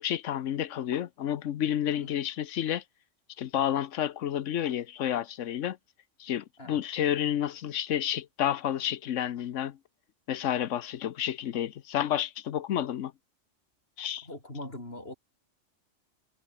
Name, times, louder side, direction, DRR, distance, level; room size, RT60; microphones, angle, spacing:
voice 1, 0.0-2.8 3.4-5.8 6.2-9.8 10.3-13.1 14.0-14.3, left 10 dB, 85° left, 1.1 m, -30 dB
voice 2, 14.2-15.1, left 1 dB, 55° left, 5.6 m, -41 dB
omnidirectional pair, 1.2 m